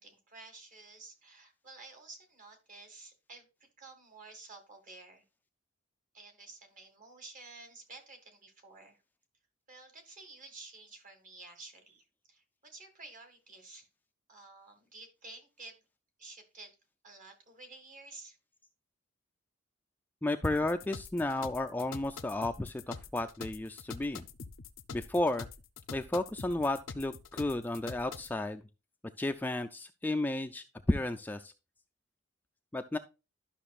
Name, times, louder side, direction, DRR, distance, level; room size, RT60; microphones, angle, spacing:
voice 1, 0.0-5.2 6.1-9.0 9.7-13.9 14.3-15.8 16.2-16.8 17.0-18.4, right 3 dB, 45° right, 5 dB, 1.9 m, -52 dB
voice 2, 20.2-24.3 24.9-25.5 25.9-28.6 29.2-31.5 32.7-33.0, left 2 dB, 10° left, 6 dB, 0.3 m, -33 dB
sound 1, 20.4-28.3, left 5 dB, 90° left, 0.6 m, -45 dB
12.0 x 5.9 x 2.4 m, 0.28 s
head